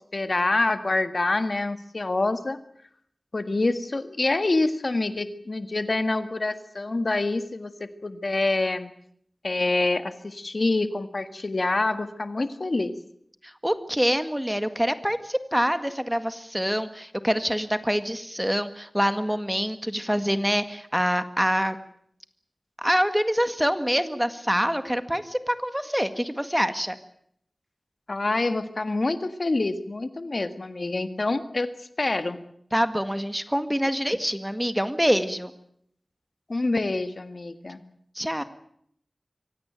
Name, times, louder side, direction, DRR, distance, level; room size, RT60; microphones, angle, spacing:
voice 1, 0.1-2.6 3.3-8.9 9.4-12.9 28.1-31.7 32.0-32.4 36.5-37.8, left 2 dB, 65° left, 10 dB, 1.7 m, -26 dB
voice 2, 13.4-21.8 22.8-27.0 32.7-35.5 38.1-38.4, equal, 5° right, 10 dB, 1.8 m, -25 dB
25.0 x 17.5 x 9.0 m, 0.69 s
wide cardioid pair, 55°, 0 cm